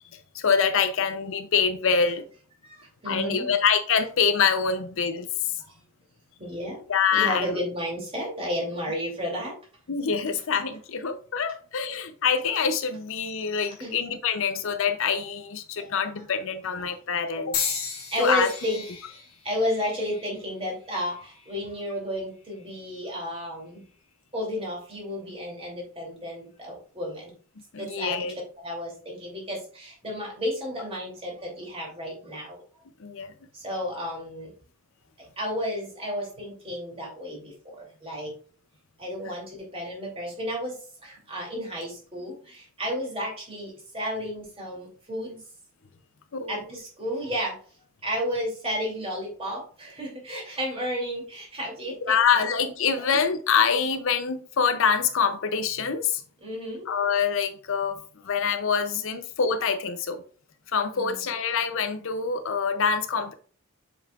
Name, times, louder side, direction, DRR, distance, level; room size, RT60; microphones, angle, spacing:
voice 1, 0.3-2.3 3.1-5.6 6.9-7.6 9.9-17.7 18.2-18.5 27.7-28.4 33.0-33.3 46.3-46.6 52.1-56.2 56.9-58.0 58.2-60.2 60.7-63.3, left 6 dB, 65° left, 0.6 m, -25 dB
voice 2, 2.6-3.5 6.4-6.8 7.1-9.5 13.8-13.9 15.8-15.9 18.1-18.8 19.1-23.8 24.3-27.3 27.8-28.3 28.6-32.6 33.5-34.5 35.4-38.3 39.0-40.8 41.0-45.4 46.5-47.6 48.0-52.4 56.4-56.9 60.9-61.2, equal, 25° right, 2.8 m, -32 dB
sound 1, 17.5-21.7 22.4-22.8 23.8-24.0, left 6 dB, 85° left, 1.9 m, -36 dB
7.3 x 5.5 x 2.4 m
head